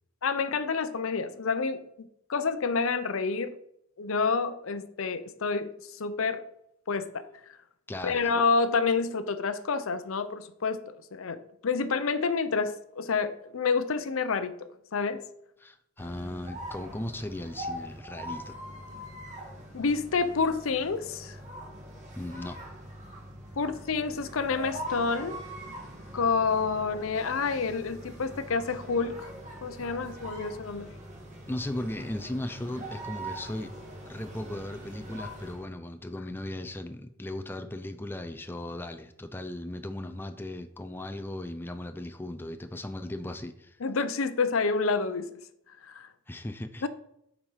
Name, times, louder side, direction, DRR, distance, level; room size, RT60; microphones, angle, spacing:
voice 1, 0.2-1.8 2.3-3.5 4.0-6.4 6.9-7.2 8.0-10.8 11.1-14.5 14.9-15.2 19.7-21.4 23.6-25.4 26.1-29.3 29.6-30.9 43.8-45.3 45.8-46.1 46.8-46.9, left 4 dB, 75° left, 0.6 m, -28 dB
voice 2, 7.9-8.3 15.6-18.6 22.2-22.6 31.5-33.7 34.0-43.8 46.3-46.9, left 1 dB, 10° left, 0.5 m, -37 dB
sound 1, 16.0-35.7, equal, 35° right, 2.3 m, -42 dB
7.5 x 5.0 x 5.6 m
head